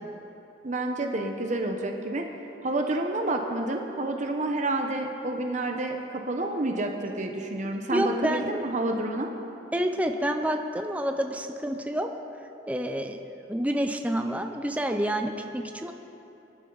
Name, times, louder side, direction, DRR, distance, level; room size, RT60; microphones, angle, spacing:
voice 1, 0.6-2.3 2.6-9.3, right 2 dB, 40° right, 3 dB, 1.0 m, -29 dB
voice 2, 7.9-8.5 9.7-12.1 12.7-15.9, equal, 10° right, 5 dB, 0.6 m, -28 dB
22.5 x 11.0 x 4.0 m, 2.9 s
head